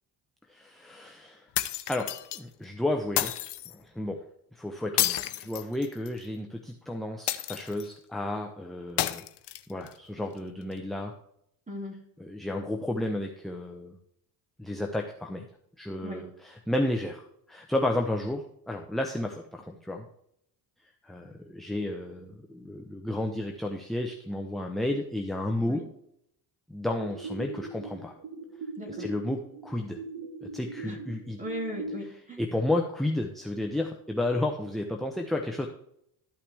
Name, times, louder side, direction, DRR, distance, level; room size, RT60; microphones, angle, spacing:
voice 1, 0.5-1.5 1.9-3.3 3.7-4.2 4.6-9.2 9.7-11.1 12.2-14.0 14.6-15.5 15.8-20.0 21.0-25.8 26.7-28.1 28.9-30.0 30.4-31.4 32.4-35.7, left 1 dB, ahead, 2 dB, 0.9 m, -32 dB
sound 1, 1.5-2.4 3.2-3.7 5.0-6.2 7.3-7.9 9.0-9.9, left 13 dB, 60° left, 0.8 m, -30 dB
voice 2, 11.7-12.0 16.0-16.2 25.6-25.8 28.8-29.1 30.8-31.0 31.4-32.4, equal, 15° right, 1 dB, 2.9 m, -37 dB
sound 2, 27.0-32.0, right 3 dB, 50° right, 1.6 m, -40 dB
13.0 x 5.9 x 3.5 m, 0.73 s
cardioid pair, 85°, 46 cm